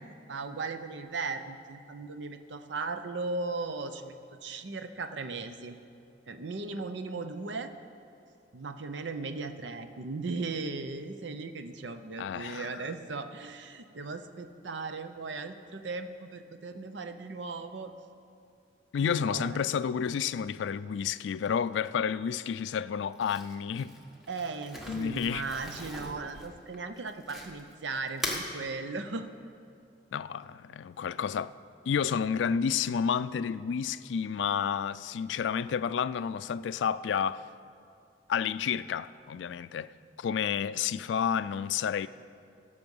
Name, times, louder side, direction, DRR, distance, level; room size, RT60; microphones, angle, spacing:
voice 1, 0.3-5.8 6.3-7.7 8.5-17.9 19.1-19.6 24.3-29.3, right 3 dB, 80° right, 0.7 m, -37 dB
voice 2, 12.2-12.8 18.9-23.9 24.9-25.4 30.1-31.5 31.9-37.4 38.3-39.9 40.2-42.1, left 7 dB, 85° left, 0.3 m, -30 dB
Crumpling crinkling, 23.1-27.7 28.1-28.5, left 1 dB, ahead, 1.3 m, -40 dB
16.5 x 6.8 x 5.4 m
head